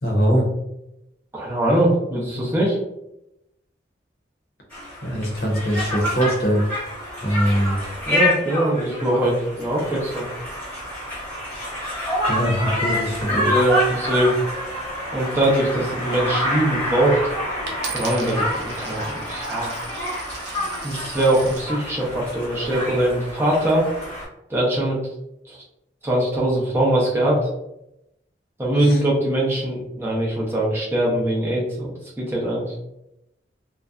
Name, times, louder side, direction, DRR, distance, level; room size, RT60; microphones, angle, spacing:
voice 1, 0.0-0.5 5.0-6.6 7.2-7.8 12.3-13.5 28.8-29.0, equal, 55° left, -2 dB, 0.7 m, -22 dB
voice 2, 1.3-2.8 8.1-10.3 13.3-14.4 15.1-17.2 17.9-19.7 20.8-23.9 24.5-25.0 25.5-25.6 26.0-27.5 28.6-32.7, right 1 dB, 10° right, -4 dB, 0.6 m, -22 dB
Conversation, 4.7-24.2, left 1 dB, 10° left, 0.9 m, -28 dB
Coin (dropping), 17.7-21.7 22.4-22.8, right 5 dB, 65° right, 0.5 m, -37 dB
2.6 x 2.1 x 2.3 m, 0.86 s
head